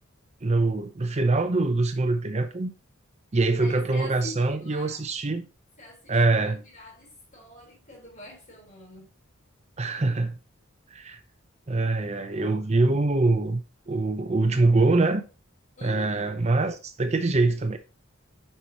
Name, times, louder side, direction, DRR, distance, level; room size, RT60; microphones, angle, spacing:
voice 1, 0.4-2.7 3.3-5.5 6.1-6.6 9.8-10.3 10.9-11.2 11.7-13.6 13.9-15.2 15.8-17.8, right 2 dB, 30° right, 0.6 m, -24 dB
voice 2, 3.6-5.0 5.8-6.2 6.5-9.1 15.8-16.3, left 2 dB, 40° left, 3.6 m, -45 dB
7.9 x 5.6 x 2.8 m
head